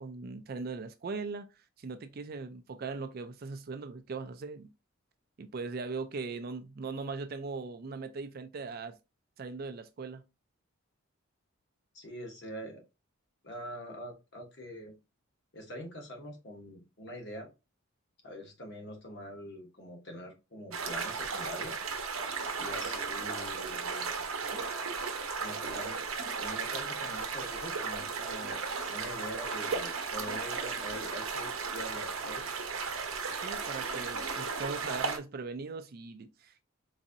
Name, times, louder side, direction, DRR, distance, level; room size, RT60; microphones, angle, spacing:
voice 1, 0.0-1.5 1.8-4.7 5.4-9.0 9.4-10.2 33.4-36.6, right 4 dB, 45° right, 0.4 m, -39 dB
voice 2, 11.9-12.8 13.4-14.9 15.5-17.5 18.2-21.7 22.6-24.1 25.4-26.0 26.4-28.6 28.9-32.4, equal, 55° left, 1.1 m, -44 dB
sound 1, 20.7-35.2, right 5 dB, 75° right, 0.7 m, -35 dB
4.0 x 2.6 x 2.5 m
head